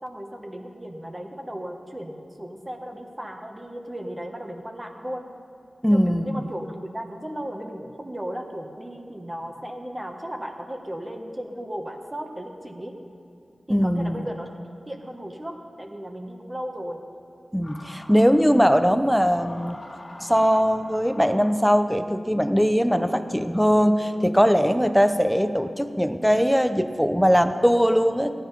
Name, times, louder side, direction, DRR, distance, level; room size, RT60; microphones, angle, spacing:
voice 1, 0.0-5.3 5.9-12.9 13.7-14.5 14.9-17.0, equal, 20° right, 3 dB, 1.2 m, -35 dB
voice 2, 5.8-6.4 13.7-14.2 17.5-19.8 20.2-28.3, equal, ahead, 9 dB, 0.6 m, -20 dB
sound 1, 17.6-18.5 19.0-21.9 22.8-24.5, left 1 dB, 40° left, 1.8 m, -45 dB
15.5 x 10.5 x 5.5 m, 2.4 s
wide cardioid pair, 95°, 0 cm